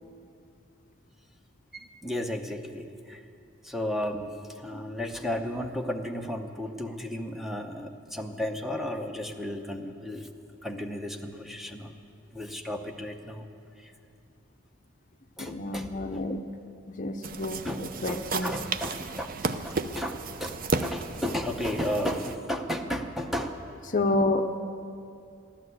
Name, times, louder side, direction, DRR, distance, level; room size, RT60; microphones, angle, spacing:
voice 1, 1.7-3.2 3.6-10.3 10.6-11.9 12.3-13.5 13.8-13.9 15.4-16.2 17.6-17.8 18.1-23.6, left 1 dB, ahead, 3 dB, 0.8 m, -34 dB
voice 2, 15.4-16.4 17.0-18.6 23.9-24.4, left 2 dB, 40° left, 6 dB, 0.6 m, -29 dB
sound 1, 17.2-22.4, right 3 dB, 45° right, 0.6 m, -33 dB
15.0 x 11.5 x 7.9 m, 2.5 s
head